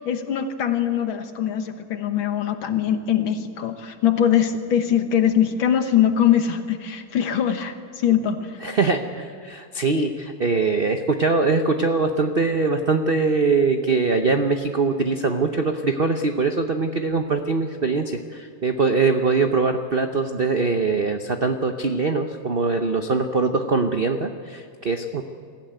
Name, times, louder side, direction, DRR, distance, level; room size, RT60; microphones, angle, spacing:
voice 1, 0.0-8.6, left 9 dB, 65° left, 8 dB, 2.0 m, -22 dB
voice 2, 8.6-25.2, right 4 dB, 70° right, 6 dB, 0.5 m, -22 dB
22.0 x 15.0 x 9.3 m, 2.2 s
omnidirectional pair, 2.4 m